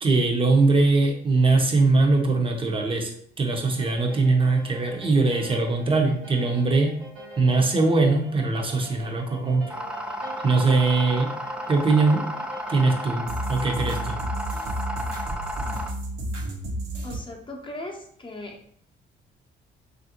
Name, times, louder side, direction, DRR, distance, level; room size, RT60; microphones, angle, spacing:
voice 1, 0.0-3.1 3.4-7.0 7.4-9.7 10.4-11.3 11.7-12.3 12.7-14.2, right 3 dB, 25° right, 2 dB, 0.7 m, -21 dB
sound 1, 3.5-17.2, right 1 dB, 80° right, 0.8 m, -36 dB
sound 2, 9.7-15.9, equal, 5° right, 0.3 m, -33 dB
voice 2, 17.0-18.6, left 1 dB, 25° left, 0 dB, 0.7 m, -38 dB
3.2 x 2.5 x 2.9 m, 0.62 s
cardioid pair, 90°, 20 cm